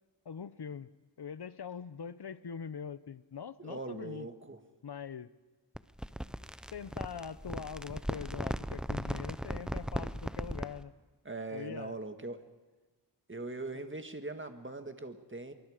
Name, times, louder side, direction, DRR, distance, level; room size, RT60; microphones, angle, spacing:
voice 1, 0.2-4.3 4.8-5.3 6.7-10.9 11.5-12.0 13.7-13.8, left 6 dB, 60° left, 16 dB, 0.8 m, -43 dB
voice 2, 3.6-4.6 11.3-12.5 13.3-15.5, right 2 dB, 25° right, 7 dB, 1.8 m, -41 dB
sound 1, 5.7-10.8, equal, ahead, 0.7 m, -38 dB
25.0 x 23.5 x 5.1 m, 1.3 s
wide cardioid pair, 65°, 45 cm